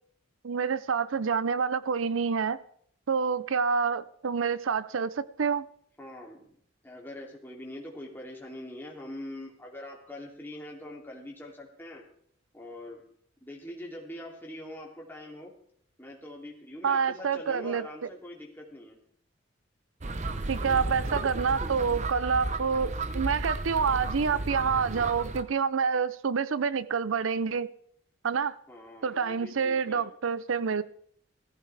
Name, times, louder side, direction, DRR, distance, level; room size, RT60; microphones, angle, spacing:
voice 1, 0.4-2.6 3.1-5.7 16.8-17.9 20.5-27.7 28.2-28.6 29.0-30.8, right 6 dB, 80° right, 0.5 m, -27 dB
voice 2, 6.0-6.5 6.8-12.0 12.5-13.0 13.4-15.5 16.0-19.0 28.7-30.1, left 1 dB, 10° left, 2.8 m, -43 dB
sound 1, 20.0-25.4, right 2 dB, 35° right, 0.8 m, -33 dB
17.5 x 15.0 x 3.4 m
head